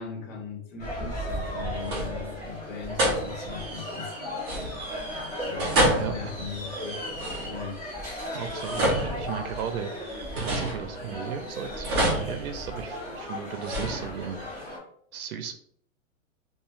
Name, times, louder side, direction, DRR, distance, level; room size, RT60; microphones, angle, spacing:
voice 1, 0.0-4.1 5.0-7.0 7.5-7.8, left 5 dB, 65° left, 0 dB, 1.2 m, -39 dB
sound 1, 0.8-14.8, equal, 10° left, 0.8 m, -36 dB
sound 2, 1.2-1.5 1.8-2.4 3.0-3.6 4.4-5.1 5.6-7.8 8.4-9.8 10.3-11.3 11.8-13.1 13.6-14.5, right 1 dB, 20° right, 0.4 m, -29 dB
voice 2, 6.0-6.3 8.3-14.6 15.1-15.5, right 7 dB, 90° right, 7 dB, 0.6 m, -35 dB
3.1 x 2.4 x 2.4 m, 0.65 s
hypercardioid pair, 160°, 42 cm